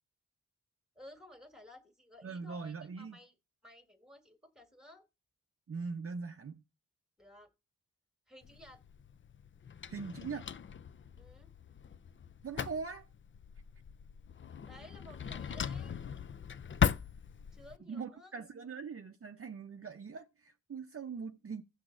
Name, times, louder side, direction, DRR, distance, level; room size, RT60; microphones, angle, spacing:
voice 1, 1.0-3.3 3.6-5.1 7.2-7.5 8.3-8.8 11.2-11.5 14.6-16.0 17.5-18.3, left 1 dB, ahead, 1.8 m, -55 dB
voice 2, 2.2-3.2 5.7-6.6 9.9-10.5 12.4-13.1 17.9-21.6, right 5 dB, 40° right, 0.6 m, -41 dB
Drawer open or close, 8.4-17.8, left 7 dB, 35° left, 0.4 m, -38 dB
16.5 x 6.0 x 2.5 m
wide cardioid pair, 85°, 34 cm